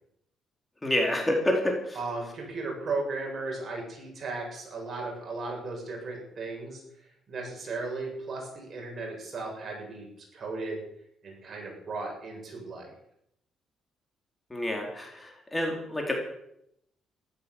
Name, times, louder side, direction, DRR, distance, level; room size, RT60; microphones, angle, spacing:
voice 1, 0.8-2.0 14.5-16.1, left 1 dB, 15° left, 1 dB, 4.4 m, -28 dB
voice 2, 1.9-6.8 7.3-10.8 11.2-12.9, right 3 dB, 45° right, 0 dB, 7.6 m, -36 dB
15.0 x 13.0 x 7.3 m, 0.77 s
cardioid pair, 90°, 0 cm